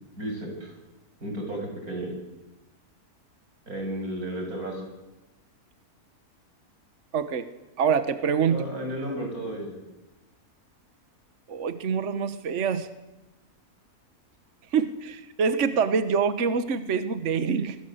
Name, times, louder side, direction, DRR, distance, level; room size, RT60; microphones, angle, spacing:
voice 1, 0.2-0.7 1.2-2.1 3.7-4.8 8.4-9.8, right 1 dB, 75° right, 1 dB, 8.4 m, -33 dB
voice 2, 7.1-7.5 7.8-8.6 11.5-12.9 14.7-17.8, right 6 dB, 55° right, 11 dB, 1.4 m, -25 dB
27.0 x 24.0 x 8.0 m, 1.0 s
omnidirectional pair, 1.6 m